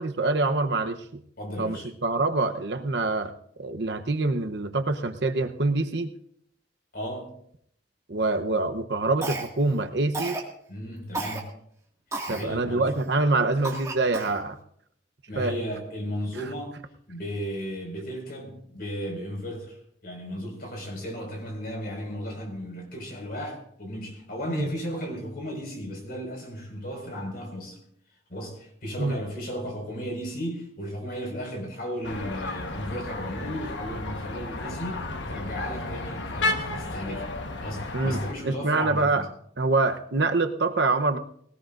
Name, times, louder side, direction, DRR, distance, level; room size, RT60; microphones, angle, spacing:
voice 1, 0.0-1.2 1.6-3.3 3.6-6.1 8.1-10.4 12.3-14.6 15.4-15.5 24.5-24.7 29.0-29.2 37.9-39.2 39.6-41.2, right 3 dB, 65° right, 0.9 m, -25 dB
voice 2, 1.4-1.9 6.9-7.3 10.7-11.5 12.3-13.2 15.3-16.8 17.1-27.8 28.3-37.3 37.6-39.3, equal, 55° left, 5.4 m, -35 dB
Cough, 9.2-9.7 10.1-10.5 11.1-11.4 12.1-12.5 13.0-13.1 13.6-14.4, right 2 dB, 15° right, 2.0 m, -32 dB
sound 1, 32.0-38.3, left 2 dB, 85° left, 1.3 m, -33 dB
20.0 x 18.0 x 2.6 m
head